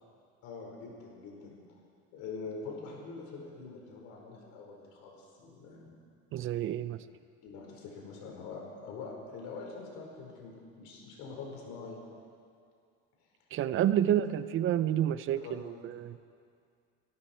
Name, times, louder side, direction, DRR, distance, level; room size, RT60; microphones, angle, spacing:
voice 1, 0.4-1.8 2.1-5.9 7.4-12.0 14.0-14.2 15.4-15.8, left 4 dB, 70° left, -1 dB, 4.5 m, -44 dB
voice 2, 6.3-7.0 13.5-16.2, right 11 dB, 45° right, 14 dB, 0.6 m, -29 dB
23.5 x 13.0 x 4.4 m, 2.3 s
cardioid pair, 140°, 30 cm